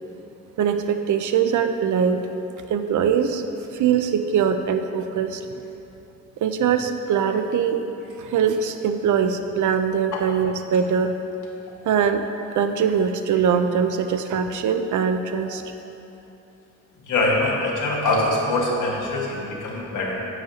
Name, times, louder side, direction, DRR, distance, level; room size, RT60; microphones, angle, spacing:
voice 1, 0.6-2.2 2.7-3.4 3.7-5.4 6.4-7.8 8.2-11.1 11.9-12.3 12.5-15.6, right 7 dB, 75° right, 7 dB, 0.6 m, -22 dB
voice 2, 17.1-20.2, left 2 dB, 90° left, -3 dB, 1.5 m, -23 dB
9.7 x 7.8 x 2.8 m, 3.0 s
wide cardioid pair, 130°, 30 cm